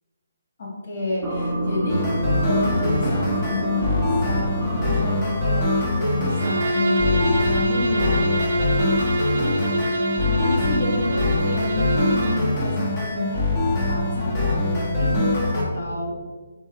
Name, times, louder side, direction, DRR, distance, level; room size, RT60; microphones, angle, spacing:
voice 1, 0.6-2.0 2.4-9.8 10.2-13.5 13.7-16.2, left 2 dB, 60° left, -2 dB, 1.1 m, -29 dB
sound 1, 1.2-6.8, right 1 dB, 15° right, 0.6 m, -29 dB
sound 2, 1.9-15.6, left 2 dB, 30° left, 0.9 m, -24 dB
Bowed string instrument, 6.3-12.5, right 1 dB, 80° right, 0.5 m, -25 dB
3.5 x 3.1 x 3.0 m, 1.3 s
hypercardioid pair, 155°, 0 cm